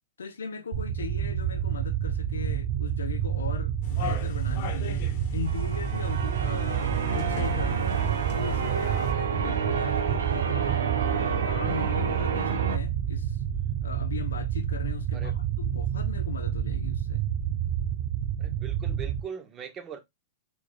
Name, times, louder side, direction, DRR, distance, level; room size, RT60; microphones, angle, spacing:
voice 1, 0.2-5.0 5.3-7.9 8.4-13.4 13.8-17.2, left 6 dB, 90° left, 0.6 m, -38 dB
sound 1, 0.7-19.2, right 10 dB, 60° right, 0.7 m, -29 dB
sound 2, 3.8-9.1, left 8 dB, 60° left, 1.2 m, -39 dB
Church bell, 5.4-12.8, right 5 dB, 90° right, 0.8 m, -31 dB
voice 2, 18.4-20.0, right 7 dB, 30° right, 1.1 m, -40 dB
4.4 x 3.2 x 2.2 m
hypercardioid pair, 115°, 0 cm